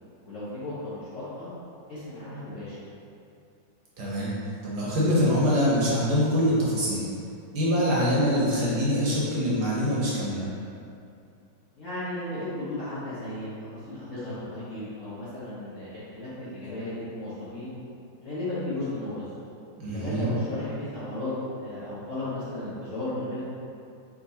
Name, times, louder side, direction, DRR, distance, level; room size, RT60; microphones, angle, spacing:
voice 1, 0.2-1.5 1.9-2.8 11.8-17.8 18.2-19.2 19.9-21.3 21.6-23.4, left 1 dB, 50° left, -11 dB, 1.0 m, -35 dB
voice 2, 4.0-4.3 4.6-7.0 7.5-10.4 19.8-20.3, equal, 65° right, -6 dB, 1.2 m, -24 dB
3.6 x 2.9 x 4.1 m, 2.5 s
omnidirectional pair, 2.1 m